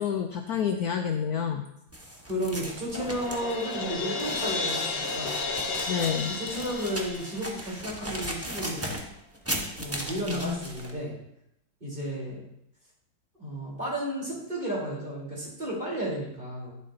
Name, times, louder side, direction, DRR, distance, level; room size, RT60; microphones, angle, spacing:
voice 1, 0.0-1.6 5.9-6.3 10.3-10.6, left 7 dB, 65° left, 4 dB, 1.1 m, -28 dB
sound 1, 1.9-10.9, equal, 10° right, 1.1 m, -37 dB
voice 2, 2.3-5.4 6.3-8.8 9.8-11.1 11.8-12.4 13.4-16.7, equal, 25° right, -4 dB, 4.1 m, -33 dB
Crash cymbal, 3.0-7.9, left 4 dB, 90° left, 2.0 m, -33 dB
11.5 x 11.0 x 2.8 m, 0.80 s
omnidirectional pair, 2.0 m